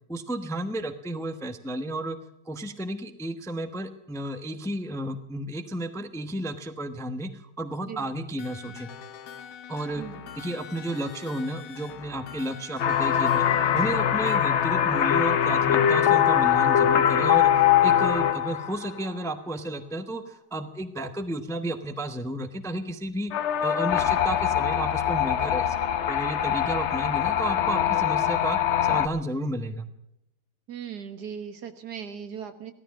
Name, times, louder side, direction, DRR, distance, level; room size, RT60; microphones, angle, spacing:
voice 1, 0.1-2.2 2.4-8.9 9.7-10.1 10.3-13.5 13.7-23.3 23.6-25.8 26.1-29.9, right 1 dB, ahead, 8 dB, 0.8 m, -32 dB
sound 1, 8.4-14.4, left 8 dB, 85° left, 1.7 m, -43 dB
voice 2, 10.0-10.3 30.7-32.7, right 8 dB, 65° right, 8 dB, 2.0 m, -38 dB
sound 2, 12.8-19.0 23.3-29.1, left 9 dB, 55° left, 0.8 m, -22 dB
17.0 x 13.5 x 6.3 m, 0.83 s
omnidirectional pair, 1.9 m